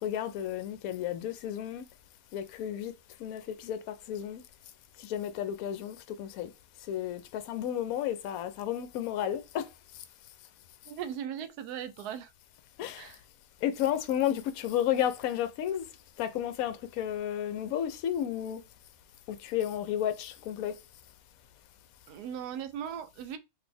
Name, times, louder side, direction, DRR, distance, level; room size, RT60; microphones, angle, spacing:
voice 1, 0.0-1.8 2.3-2.9 3.2-4.4 5.0-6.5 6.9-9.7 12.8-13.1 13.6-15.9 16.2-18.6 19.3-20.7, left 10 dB, 70° left, 0.9 m, -32 dB
voice 2, 10.9-12.3 13.0-13.2 22.1-23.4, right 9 dB, 80° right, 1.1 m, -38 dB
4.0 x 2.7 x 3.3 m
omnidirectional pair, 1.7 m